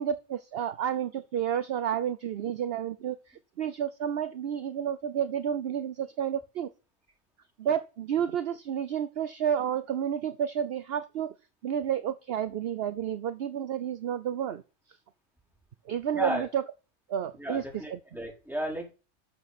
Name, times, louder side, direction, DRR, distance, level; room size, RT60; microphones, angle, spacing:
voice 1, 0.0-6.7 7.6-11.3 11.6-14.6 15.9-16.6 17.1-17.6 17.9-18.0, right 9 dB, 60° right, 0.8 m, -30 dB
voice 2, 16.1-16.5 17.4-18.9, equal, ahead, 4.5 m, -34 dB
12.5 x 7.1 x 4.2 m
omnidirectional pair, 1.3 m